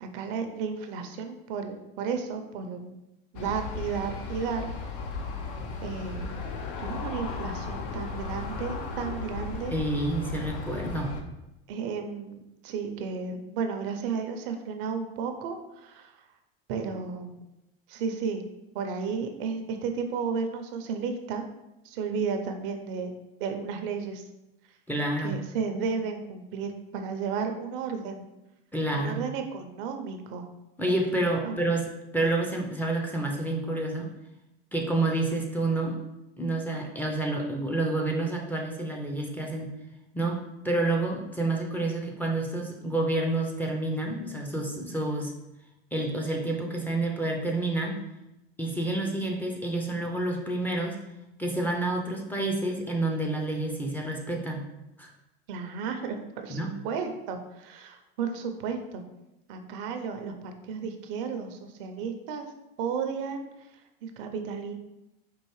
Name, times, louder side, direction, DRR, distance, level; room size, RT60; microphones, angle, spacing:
voice 1, 0.0-2.9 3.3-4.7 5.8-6.4 6.8-9.8 11.7-16.1 16.7-17.4 17.9-18.4 18.7-21.4 21.8-23.1 23.4-24.2 25.2-28.2 28.9-30.5 31.4-31.6 55.5-59.0 59.5-62.5 62.8-63.4 64.0-64.7, right 5 dB, 65° right, 6 dB, 0.6 m, -33 dB
Aircraft, 3.3-11.2, left 4 dB, 65° left, 0.6 m, -35 dB
voice 2, 9.7-11.1 24.9-25.4 28.7-29.2 30.8-34.1 34.7-36.0 36.4-39.7 40.1-45.3 45.9-48.0 48.6-51.0 51.4-54.6 55.0-55.1 56.5-56.7, right 2 dB, 5° left, -1 dB, 0.5 m, -29 dB
4.6 x 2.5 x 3.1 m, 0.92 s
hypercardioid pair, 105°, 30 cm